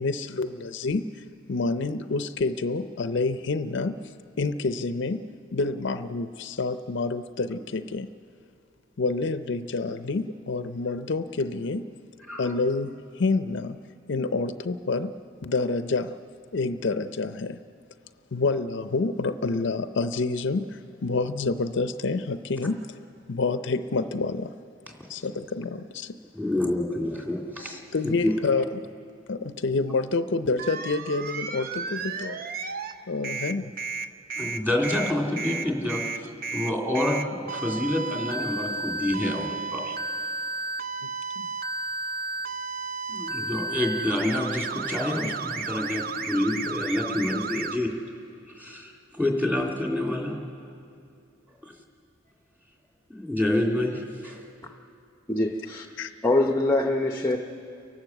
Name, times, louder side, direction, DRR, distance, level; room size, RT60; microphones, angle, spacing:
voice 1, 0.0-8.1 9.0-11.9 12.4-13.8 14.1-16.2 16.5-17.6 18.3-23.0 23.3-24.5 25.1-26.2 27.9-28.9 29.3-32.4 33.1-33.7 41.0-41.1 41.4-41.5 56.0-56.1, left 3 dB, 60° left, 10 dB, 0.6 m, -28 dB
voice 2, 26.3-27.8 28.2-28.3 34.4-40.0 43.1-47.9 48.5-50.4 51.6-51.7 53.1-54.4, left 1 dB, 10° right, 0 dB, 2.7 m, -28 dB
sound 1, 30.6-32.9 33.2-47.8, right 4 dB, 50° right, 0.7 m, -33 dB
voice 3, 55.3-55.9 56.2-57.4, left 2 dB, 15° left, 3 dB, 0.7 m, -23 dB
29.5 x 12.0 x 7.9 m, 2.5 s
head